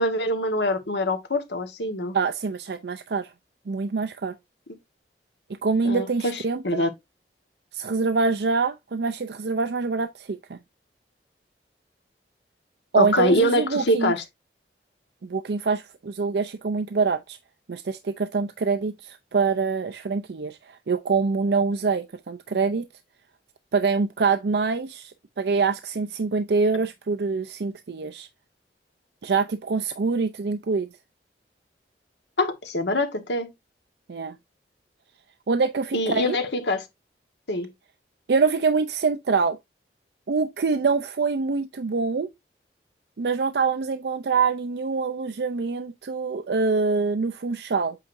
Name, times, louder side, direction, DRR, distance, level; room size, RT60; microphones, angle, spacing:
voice 1, 0.0-2.1 5.8-6.9 13.0-14.2 32.4-33.5 35.9-36.8 37.5-37.7, left 1 dB, 85° left, 1.4 m, -24 dB
voice 2, 2.1-3.3 3.7-4.3 5.6-6.8 7.7-10.6 12.9-14.1 15.2-17.4 17.7-22.8 23.7-28.3 29.2-30.9 34.1-34.4 35.5-36.4 38.3-39.6 40.3-42.3 43.2-48.0, right 4 dB, 70° right, 0.5 m, -25 dB
8.3 x 4.6 x 2.6 m
head